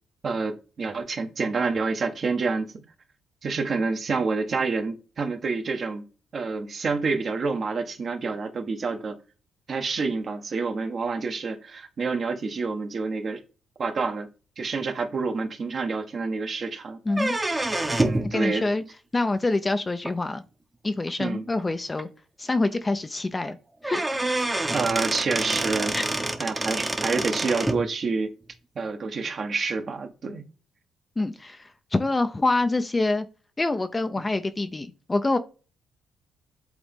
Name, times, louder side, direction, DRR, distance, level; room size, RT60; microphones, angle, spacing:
voice 1, 0.2-2.7 3.4-6.1 6.3-9.2 9.7-13.4 13.8-14.3 14.6-17.0 18.0-18.7 21.2-21.5 24.7-26.0 26.4-28.3 28.7-30.5, right 4 dB, 45° right, 1.5 m, -28 dB
sound 1, 17.1-18.3 20.0-20.1 21.1-21.2 21.6-21.7 22.0-22.1 23.5-23.6 23.8-27.8, right 2 dB, 15° right, 1.1 m, -27 dB
voice 2, 18.2-18.8 19.1-20.4 20.8-22.1 22.4-23.6 23.8-24.2 25.9-26.0 31.2-33.2 33.6-35.4, left 2 dB, 20° left, 0.7 m, -26 dB
8.0 x 3.9 x 3.7 m
cardioid pair, 90°, 0 cm